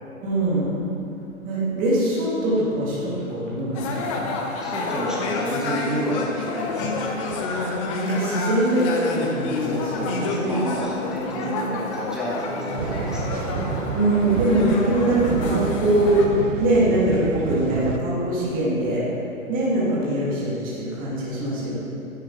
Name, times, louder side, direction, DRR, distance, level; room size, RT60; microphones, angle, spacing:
voice 1, 0.2-0.7 1.4-4.3 7.5-10.7 11.4-11.7 13.9-19.0 19.5-21.8, right 1 dB, 20° right, -6 dB, 2.7 m, -23 dB
sound 1, 3.7-16.3, left 3 dB, 25° left, 0.8 m, -29 dB
voice 2, 4.4-7.1 9.5-13.4, equal, ahead, -6 dB, 1.2 m, -30 dB
sound 2, 12.8-18.0, right 7 dB, 65° right, 0.7 m, -30 dB
10.0 x 8.7 x 5.0 m, 2.8 s
hypercardioid pair, 150°, 42 cm